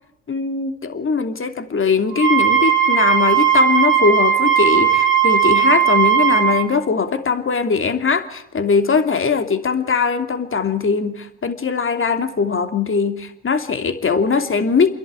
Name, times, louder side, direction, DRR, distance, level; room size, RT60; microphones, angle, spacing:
voice 1, 0.3-14.9, left 5 dB, 35° left, 7 dB, 2.8 m, -20 dB
Wind instrument woodwind instrument, 2.1-6.6, right 9 dB, 30° right, 2.8 m, -16 dB
29.5 x 11.0 x 9.0 m, 0.83 s
hypercardioid pair, 60°, 36 cm